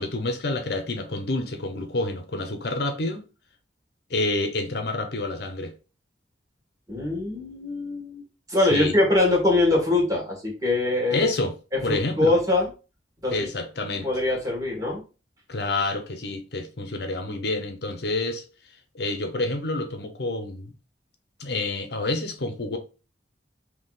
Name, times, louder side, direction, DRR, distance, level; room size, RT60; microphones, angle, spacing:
voice 1, 0.0-3.2 4.1-5.7 8.7-8.9 11.1-11.5 11.8-12.3 13.3-14.1 15.5-18.4 18.9-20.7 21.4-22.8, left 2 dB, 60° left, 0.8 m, -28 dB
voice 2, 6.9-11.3 11.7-12.7 13.2-13.5 14.0-15.0, left 2 dB, 20° right, 1.8 m, -23 dB
3.8 x 2.9 x 4.0 m
head